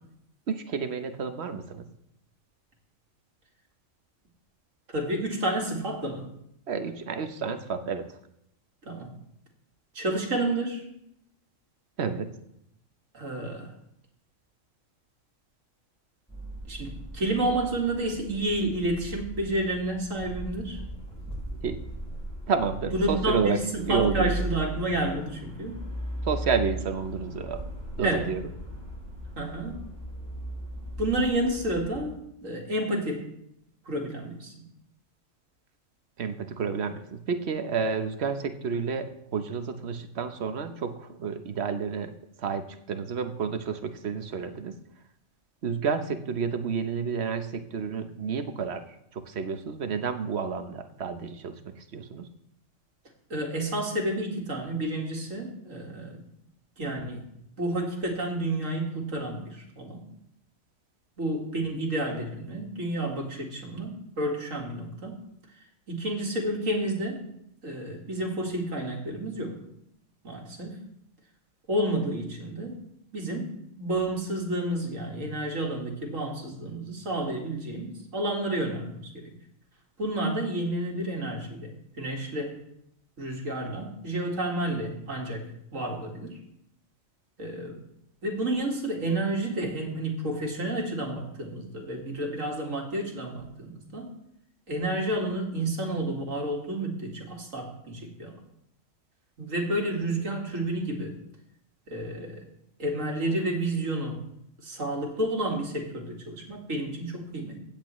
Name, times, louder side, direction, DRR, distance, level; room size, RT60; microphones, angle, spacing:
voice 1, 0.5-1.8 6.7-8.0 12.0-12.3 21.6-21.8 22.5-23.6 23.9-24.3 26.2-27.6 28.0-28.4 36.2-42.1 42.4-44.8 45.6-48.8 49.1-52.3, right 6 dB, 55° right, 8 dB, 1.1 m, -30 dB
voice 2, 4.9-6.3 8.8-9.1 9.9-10.8 13.1-13.7 16.7-20.8 22.9-25.9 28.0-28.3 29.4-29.9 31.0-33.3 33.9-34.5 53.3-56.2 56.8-57.3 57.6-60.0 61.2-65.2 65.9-67.2 67.6-69.6 70.2-70.8 71.7-72.8 73.1-79.3 80.0-82.6 83.2-86.4 87.4-87.8 88.2-94.1 94.7-98.4 99.4-101.1 101.9-102.4 102.8-104.2 104.6-107.6, right 1 dB, 70° right, 0 dB, 2.2 m, -30 dB
sound 1, 16.3-32.0, right 1 dB, 5° left, 3.3 m, -38 dB
16.5 x 8.8 x 3.1 m, 0.77 s
omnidirectional pair, 1.4 m